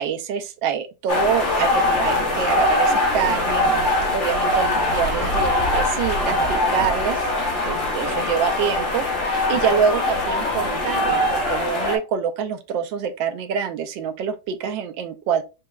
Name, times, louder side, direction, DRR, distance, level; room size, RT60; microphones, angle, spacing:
voice 1, 0.0-7.2 7.6-15.4, right 7 dB, 85° right, 1.4 m, -26 dB
sound 1, 1.1-12.0, left 1 dB, 45° left, 1.3 m, -22 dB
4.2 x 3.7 x 2.2 m
omnidirectional pair, 2.0 m